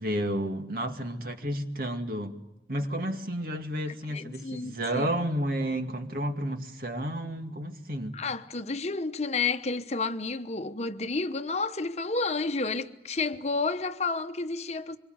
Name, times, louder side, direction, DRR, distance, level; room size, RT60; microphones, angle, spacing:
voice 1, 0.0-2.4 2.7-8.2, right 1 dB, 55° right, 2.3 m, -31 dB
voice 2, 4.1-5.1 8.1-15.0, left 3 dB, 40° left, 1.0 m, -31 dB
26.0 x 23.5 x 8.0 m
head